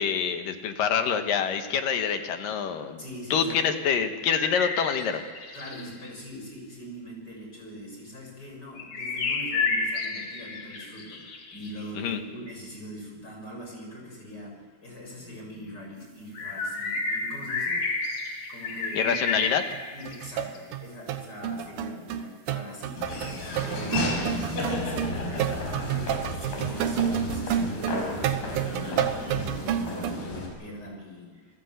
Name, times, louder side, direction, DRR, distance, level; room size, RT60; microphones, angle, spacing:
voice 1, 0.0-3.0 3.3-5.2 12.0-12.2 18.9-19.6, left 7 dB, 70° left, 7 dB, 2.9 m, -26 dB
voice 2, 3.0-3.6 5.5-18.0 18.5-19.2 19.9-23.3 23.6-31.6, equal, 25° left, 0 dB, 7.3 m, -42 dB
sound 1, 4.3-6.1 8.8-11.8 16.3-20.6, left 4 dB, 50° left, 3.2 m, -31 dB
sound 2, 19.7-19.8 20.1-30.1, right 10 dB, 80° right, 2.8 m, -30 dB
Laughter / Walk footsteps, 23.0-30.5, left 1 dB, 85° left, 6.8 m, -32 dB
28.5 x 18.5 x 8.1 m, 1.5 s
omnidirectional pair, 4.2 m